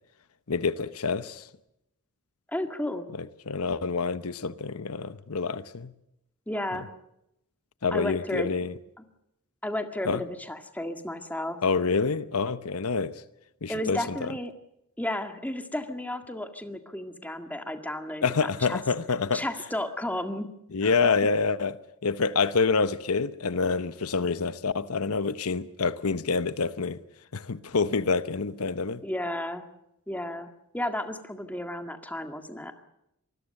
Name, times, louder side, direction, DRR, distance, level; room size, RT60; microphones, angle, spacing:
voice 1, 0.5-1.5 3.1-5.9 7.8-8.7 10.0-10.2 11.6-13.1 13.6-14.3 18.2-19.4 20.7-21.8 22.0-27.0 27.3-29.0, left 4 dB, 80° left, 0.9 m, -27 dB
voice 2, 2.5-3.1 6.5-6.9 7.9-8.5 9.0-9.1 9.6-11.6 13.7-14.5 15.0-18.8 19.3-20.5 20.8-20.9 29.0-29.7 30.1-32.7, left 1 dB, 5° left, 1.9 m, -33 dB
26.0 x 20.5 x 6.6 m
head